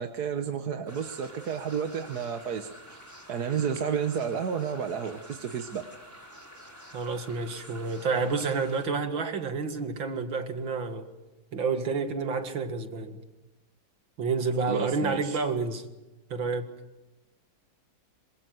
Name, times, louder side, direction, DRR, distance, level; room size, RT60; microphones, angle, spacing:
voice 1, 0.0-3.0 3.3-5.8 14.7-15.4, right 7 dB, 55° right, 1.7 m, -31 dB
sound 1, 0.9-8.9, equal, 10° right, 5.1 m, -49 dB
voice 2, 6.9-11.1 11.5-13.2 14.2-15.8 16.3-16.7, right 4 dB, 80° right, 2.7 m, -29 dB
26.0 x 25.0 x 7.8 m
omnidirectional pair, 2.1 m